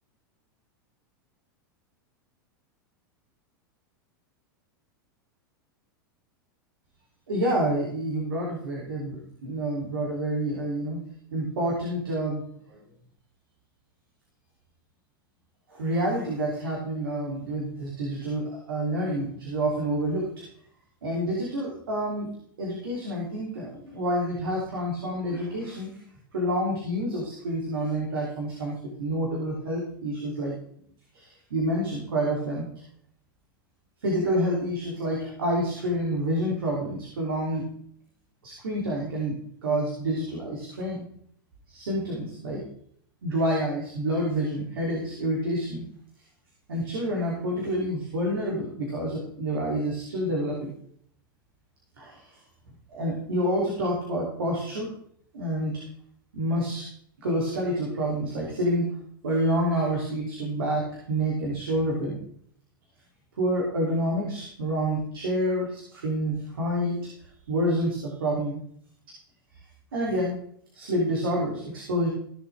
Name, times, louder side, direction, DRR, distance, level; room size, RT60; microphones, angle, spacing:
voice 1, 7.3-11.0 11.3-12.4 12.7-12.8 15.7-20.2 21.0-22.3 22.6-25.9 26.3-30.6 31.1-32.7 34.0-37.7 38.4-39.3 39.6-41.1 41.7-42.6 43.2-45.8 46.7-50.7 52.0-52.2 52.9-54.9 55.3-55.8 56.3-56.8 57.2-58.9 59.2-62.2 63.4-67.0 67.5-68.6 69.9-70.4 70.7-72.1, right 1 dB, 85° right, -3 dB, 3.2 m, -28 dB
15.5 x 7.4 x 3.5 m, 0.64 s
hypercardioid pair, 110°, 12 cm